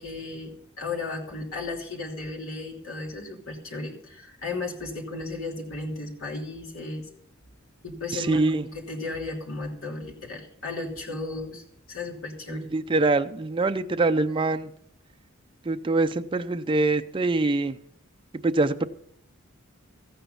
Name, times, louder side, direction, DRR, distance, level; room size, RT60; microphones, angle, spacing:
voice 1, 0.0-7.1 7.8-12.6, left 3 dB, 75° left, -1 dB, 3.0 m, -35 dB
voice 2, 8.1-8.6 12.5-14.7 15.7-17.8 18.3-18.9, right 2 dB, 25° right, 8 dB, 0.4 m, -24 dB
14.5 x 9.1 x 5.5 m, 0.69 s
head